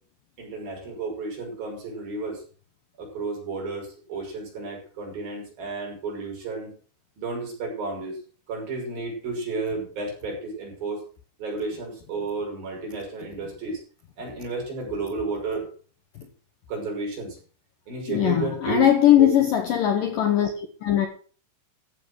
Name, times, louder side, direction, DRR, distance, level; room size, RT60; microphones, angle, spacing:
voice 1, 0.4-2.4 3.0-6.7 7.2-8.2 8.5-11.0 11.4-13.8 14.2-15.7 16.7-17.4 17.9-18.9 19.2-19.4, right 3 dB, 45° right, 7.5 m, -32 dB
voice 2, 18.1-21.1, left 11 dB, 85° left, 1.9 m, -20 dB
15.0 x 8.1 x 6.4 m
omnidirectional pair, 5.9 m